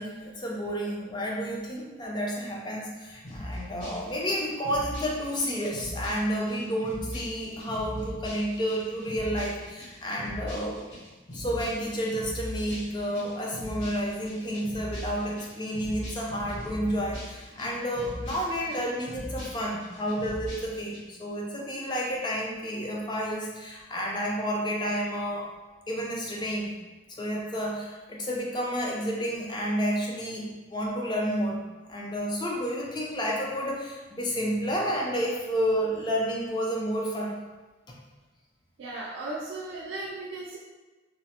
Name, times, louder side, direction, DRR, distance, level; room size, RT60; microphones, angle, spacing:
voice 1, 0.0-10.8 11.3-25.5 25.9-26.7 27.1-31.6 31.9-37.4, equal, 25° left, -2 dB, 0.4 m, -30 dB
sound 1, 3.2-21.0, left 1 dB, 60° left, 1.0 m, -40 dB
voice 2, 38.8-40.6, right 2 dB, 85° right, -5 dB, 0.4 m, -36 dB
3.0 x 2.0 x 2.8 m, 1.2 s
head